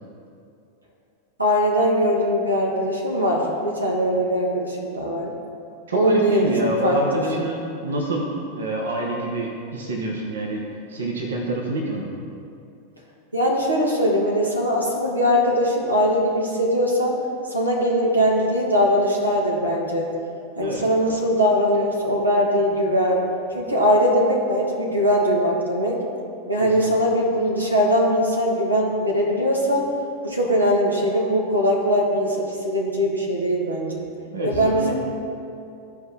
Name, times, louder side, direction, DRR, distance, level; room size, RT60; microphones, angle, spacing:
voice 1, 1.4-5.3 5.9-6.5 6.8-7.2 13.3-17.2 17.5-20.1 20.6-23.2 23.5-26.0 26.5-29.9 30.2-34.0 34.4-34.9, equal, 85° right, -2 dB, 1.3 m, -21 dB
voice 2, 5.9-10.6 10.9-12.1 20.6-20.8 26.6-26.9 34.3-34.9, right 2 dB, 65° right, -1 dB, 1.2 m, -27 dB
15.0 x 5.0 x 3.5 m, 2.6 s
figure-of-eight pair, 90°, 0 cm